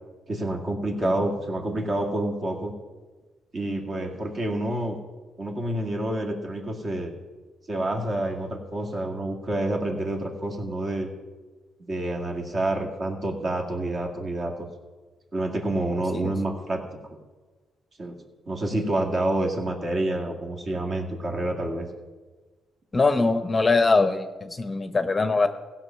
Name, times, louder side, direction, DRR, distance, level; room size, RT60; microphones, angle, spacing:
voice 1, 0.3-2.7 3.5-5.0 5.4-7.1 7.7-11.1 11.9-14.5 15.3-16.8 18.0-18.2 18.5-21.9, right 1 dB, 45° right, 1 dB, 2.1 m, -28 dB
voice 2, 22.9-25.5, left 3 dB, 25° left, 9 dB, 0.7 m, -22 dB
16.0 x 6.0 x 5.7 m, 1.3 s
cardioid pair, 90°, 0 cm